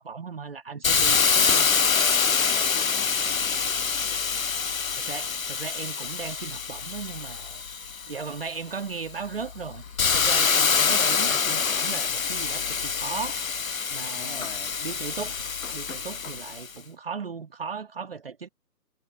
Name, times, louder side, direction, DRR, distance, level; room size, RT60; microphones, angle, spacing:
voice 1, 0.0-1.7 4.9-7.6 8.1-9.8 10.1-13.4 13.9-14.5 14.8-15.5 15.7-18.5, right 5 dB, 35° right, 2.0 m, -36 dB
Hiss, 0.8-8.4 8.9-16.7, left 6 dB, 55° left, 0.5 m, -25 dB
voice 2, 1.3-3.7 14.1-14.8, left 4 dB, 35° left, 2.9 m, -44 dB
figure-of-eight pair, 155°, 49 cm